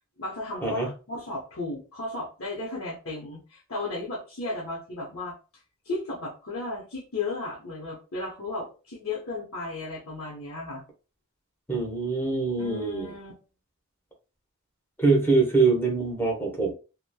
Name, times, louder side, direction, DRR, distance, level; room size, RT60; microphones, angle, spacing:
voice 1, 0.2-0.8 1.1-5.3 5.8-10.8 12.6-13.3, left 2 dB, 75° left, -5 dB, 0.9 m, -34 dB
voice 2, 11.7-13.1 15.0-16.7, right 3 dB, 10° left, -1 dB, 0.8 m, -24 dB
2.9 x 2.1 x 2.2 m, 0.33 s
head